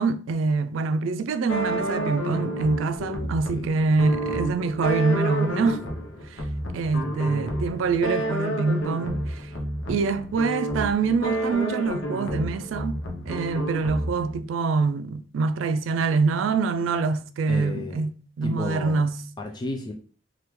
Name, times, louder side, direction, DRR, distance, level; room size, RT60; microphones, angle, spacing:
voice 1, 0.0-5.8 6.3-6.4 6.7-9.5 9.9-13.0 13.3-19.2, right 4 dB, 85° right, 0.3 m, -25 dB
sound 1, 1.5-14.4, equal, 85° left, 0.7 m, -30 dB
voice 2, 3.0-3.9 17.5-18.0 18.4-19.1 19.4-19.9, left 2 dB, 25° left, 0.3 m, -33 dB
3.4 x 2.3 x 3.0 m
head